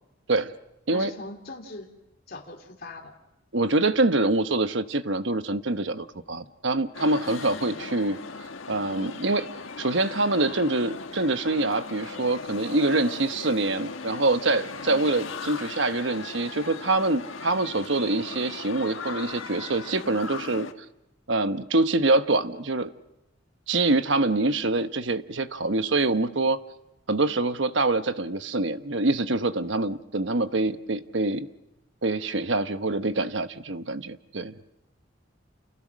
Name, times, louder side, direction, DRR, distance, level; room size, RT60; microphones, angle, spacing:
voice 1, 0.9-1.9 2.3-3.1 7.5-7.6 14.8-15.0 24.5-24.6, left 2 dB, 50° left, 1 dB, 3.0 m, -41 dB
voice 2, 3.5-8.2 8.7-9.5 9.8-20.7 21.3-22.9 23.7-26.6 27.1-31.5 32.0-34.5, right 2 dB, 70° right, 11 dB, 1.1 m, -25 dB
sound 1, 6.9-20.7, left 4 dB, 90° left, 1.5 m, -38 dB
29.5 x 29.0 x 6.4 m, 0.91 s
head